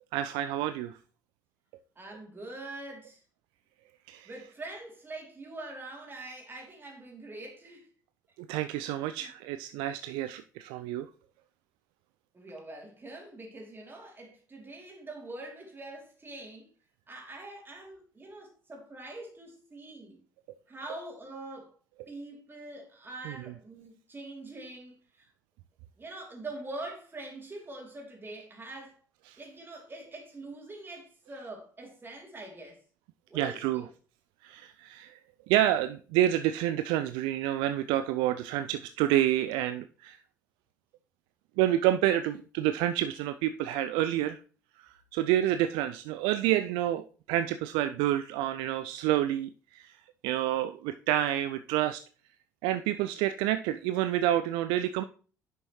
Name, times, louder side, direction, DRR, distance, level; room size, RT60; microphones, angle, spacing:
voice 1, 0.1-1.0 4.1-4.3 8.5-11.1 23.3-23.4 29.3-29.4 33.3-33.9 34.4-35.2 35.5-40.2 41.6-44.4 44.8-49.9 50.2-52.0 52.6-55.0, right 13 dB, 60° right, 0.4 m, -28 dB
voice 2, 2.0-3.2 4.3-7.8 9.0-9.3 12.3-16.7 17.1-20.2 20.7-21.7 22.1-25.3 26.0-29.0 29.4-32.8 33.3-33.9, right 2 dB, 25° right, 3.0 m, -44 dB
10.0 x 6.1 x 3.1 m
figure-of-eight pair, 55°, 10 cm